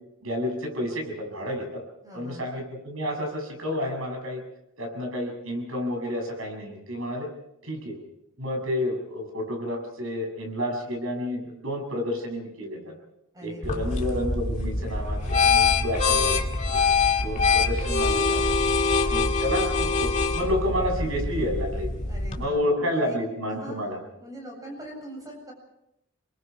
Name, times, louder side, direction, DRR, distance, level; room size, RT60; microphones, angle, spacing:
voice 1, 0.2-1.8 2.1-4.4 4.8-7.3 7.6-7.9 8.4-12.9 13.4-16.4 16.6-16.7 17.2-18.5 19.0-21.9 22.4-24.0, left 1 dB, 85° right, 2 dB, 7.2 m, -30 dB
voice 2, 2.0-2.4 13.3-14.0 22.1-23.2 23.5-25.5, equal, 15° right, 1 dB, 7.6 m, -42 dB
sound 1, 13.6-22.4, left 4 dB, 35° left, 2.1 m, -24 dB
28.5 x 22.5 x 4.7 m, 0.82 s
head